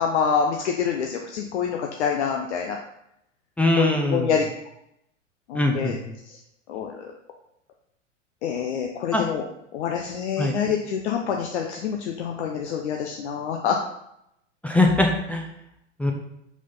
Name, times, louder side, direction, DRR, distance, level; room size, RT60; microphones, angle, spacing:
voice 1, 0.0-2.8 3.7-4.4 5.5-6.0 6.3-6.4 6.7-7.1 8.4-9.4 9.7-13.8, left 7 dB, 60° left, 2 dB, 0.8 m, -26 dB
voice 2, 3.6-4.3 5.5-5.9 9.1-9.2 10.4-10.5 14.6-15.4 16.0-16.1, left 1 dB, 5° left, 2 dB, 0.6 m, -21 dB
5.7 x 5.0 x 3.9 m, 0.80 s
hypercardioid pair, 100°, 38 cm